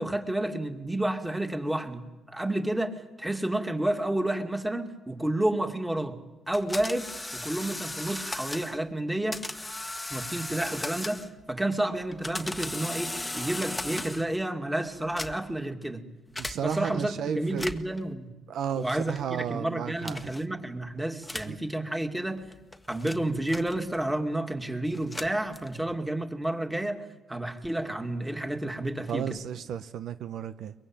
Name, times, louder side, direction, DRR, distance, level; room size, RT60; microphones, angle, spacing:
voice 1, 0.0-6.2 6.5-9.4 10.1-11.2 11.5-16.0 16.6-18.3 18.8-22.4 22.9-27.0 27.3-29.4, right 1 dB, 10° right, 2.5 m, -30 dB
sound 1, 6.5-8.8 9.3-11.4 12.0-14.4 15.0-15.6 16.4-16.6 17.5-18.0 18.9-19.2 20.0-20.4 21.2-21.6 22.4-24.1 24.9-25.9, left 2 dB, 10° left, 1.4 m, -37 dB
voice 2, 16.4-17.7 18.5-20.3 21.5-21.6 29.1-30.7, right 8 dB, 75° right, 0.9 m, -33 dB
23.0 x 22.0 x 9.0 m
cardioid pair, 90°, 0 cm